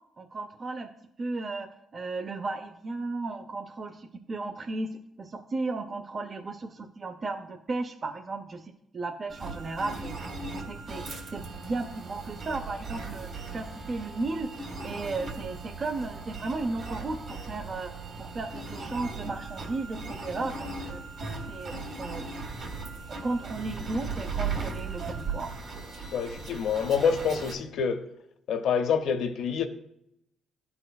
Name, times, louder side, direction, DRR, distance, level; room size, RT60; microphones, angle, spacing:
voice 1, 0.2-0.9 1.2-4.9 5.2-10.2 10.5-11.0 11.3-14.5 14.8-17.9 18.2-21.0 21.5-22.2 23.1-25.5, right 3 dB, 40° right, 0.5 m, -35 dB
sound 1, 9.3-27.5, right 4 dB, 60° right, 1.6 m, -38 dB
voice 2, 26.1-28.0 28.5-29.7, left 6 dB, 75° left, 0.7 m, -27 dB
11.5 x 4.3 x 2.3 m
cardioid pair, 90°, 0 cm